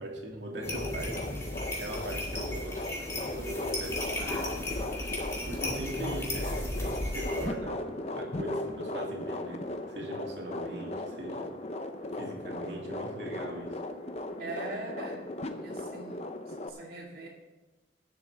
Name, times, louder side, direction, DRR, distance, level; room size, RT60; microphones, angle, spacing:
voice 1, 0.0-1.5 1.7-4.6 5.5-11.5 12.1-13.8, equal, 70° right, 0 dB, 2.4 m, -40 dB
sound 1, 0.5-16.7, left 1 dB, 35° left, 0.7 m, -37 dB
sound 2, 0.6-7.5, left 1 dB, 15° left, 2.2 m, -36 dB
voice 2, 14.4-15.2 15.5-17.3, right 2 dB, 50° right, -6 dB, 2.5 m, -41 dB
19.5 x 7.7 x 3.6 m, 1.1 s
head